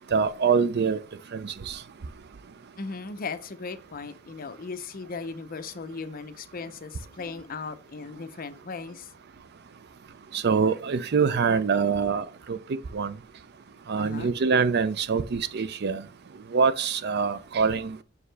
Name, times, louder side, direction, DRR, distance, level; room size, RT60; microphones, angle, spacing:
voice 1, 0.1-1.0 1.3-1.8 10.3-12.6 12.9-13.1 13.9-16.0 16.5-18.0, right 5 dB, 55° right, 0.5 m, -24 dB
voice 2, 2.8-9.1 14.0-14.3, left 4 dB, 45° left, 0.6 m, -37 dB
6.4 x 4.8 x 3.3 m
head